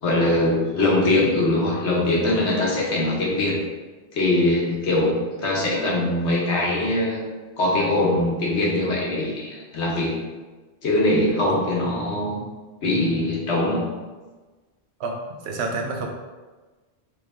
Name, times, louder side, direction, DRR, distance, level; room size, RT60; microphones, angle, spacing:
voice 1, 0.0-3.6 4.1-7.2 7.6-10.2 10.8-12.4 12.8-13.9, left 1 dB, 80° left, -4 dB, 1.3 m, -22 dB
voice 2, 15.4-16.1, right 3 dB, 80° right, 2 dB, 0.9 m, -28 dB
3.2 x 3.1 x 3.6 m, 1.3 s
omnidirectional pair, 1.1 m